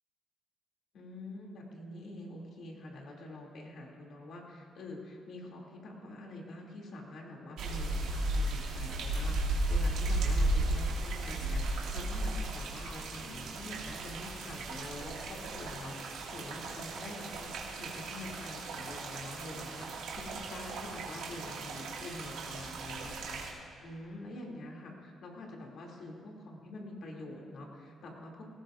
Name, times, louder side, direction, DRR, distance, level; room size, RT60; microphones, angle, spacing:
voice 1, 0.9-16.0 16.3-17.5 17.8-28.5, left 1 dB, 65° left, -1 dB, 2.7 m, -46 dB
sound 1, 7.6-23.5, right 2 dB, 90° right, 2.1 m, -35 dB
18.5 x 17.0 x 2.6 m, 2.5 s
cardioid pair, 90°, 0 cm